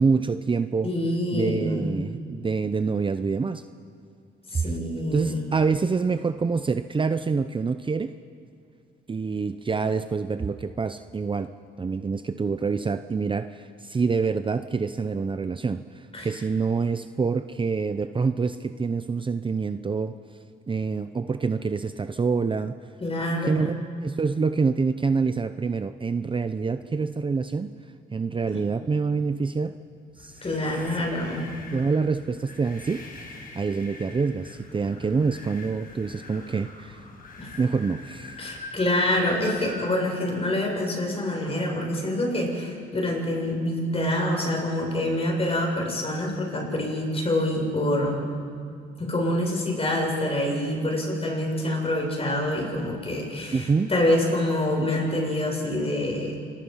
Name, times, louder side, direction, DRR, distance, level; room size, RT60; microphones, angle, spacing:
voice 1, 0.0-0.9 1.3-3.6 4.5-4.8 5.1-8.1 9.1-11.5 11.8-20.2 20.7-22.8 23.4-23.7 24.0-27.7 28.1-29.8 30.2-30.4 31.7-33.1 33.6-37.0 37.6-38.4 53.5-53.9, right 4 dB, 25° right, 10 dB, 0.7 m, -26 dB
voice 2, 0.8-1.8 4.5-5.4 16.1-16.3 23.0-23.6 28.5-28.6 30.4-31.5 37.4-37.5 38.4-48.2 49.0-56.3, left 1 dB, 30° left, 0 dB, 7.3 m, -26 dB
sound 1, 30.1-39.9, left 3 dB, 45° left, 5.7 m, -42 dB
28.0 x 22.5 x 5.7 m, 2.4 s
cardioid pair, 90°, 20 cm